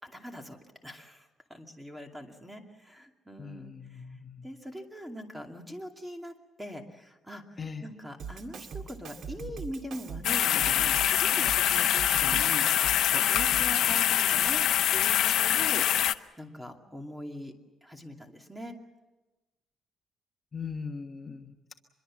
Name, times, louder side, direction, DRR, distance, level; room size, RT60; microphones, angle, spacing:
voice 1, 0.0-4.0 4.4-14.6 14.9-17.5 17.8-18.7 20.6-21.0, equal, 5° right, 4 dB, 2.5 m, -42 dB
voice 2, 3.4-4.5 7.6-7.9 20.5-21.7, left 5 dB, 30° left, 3 dB, 1.3 m, -40 dB
Drum kit, 8.2-13.8, right 6 dB, 65° right, 2.1 m, -41 dB
sound 1, 10.2-16.1, left 11 dB, 75° left, 0.7 m, -24 dB
25.0 x 22.5 x 7.5 m, 1.1 s
cardioid pair, 125°, 0 cm